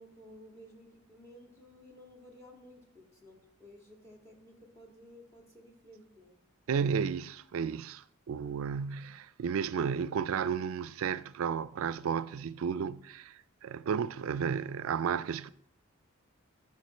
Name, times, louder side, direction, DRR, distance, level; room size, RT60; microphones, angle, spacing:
voice 1, 0.0-6.3, equal, 15° left, 1.8 m, -55 dB
voice 2, 6.7-15.5, right 7 dB, 80° right, 0.4 m, -33 dB
12.0 x 5.8 x 4.3 m
head